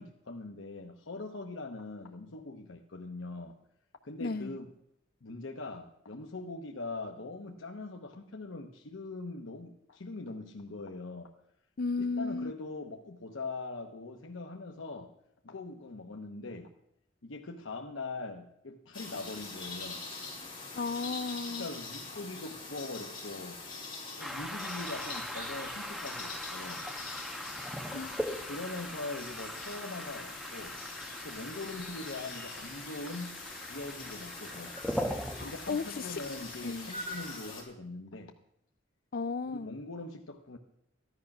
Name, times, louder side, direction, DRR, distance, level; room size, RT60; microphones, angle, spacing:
voice 1, 0.0-3.5 4.0-4.7 5.2-11.3 12.0-15.1 15.4-16.7 17.2-20.0 21.5-23.6 24.2-26.8 27.9-28.1 28.4-30.8 31.2-35.0 35.4-38.3 39.5-40.6, left 2 dB, 80° left, 2 dB, 1.0 m, -42 dB
voice 2, 4.2-4.5 11.8-12.5 20.8-21.7 27.9-28.2 35.4-35.9 36.6-36.9 39.1-39.8, left 4 dB, 50° left, 14 dB, 0.4 m, -34 dB
sound 1, 18.9-37.6, left 3 dB, 25° left, 4.4 m, -43 dB
sound 2, 24.2-37.4, equal, ahead, 1.1 m, -41 dB
15.0 x 11.0 x 6.0 m, 0.83 s
head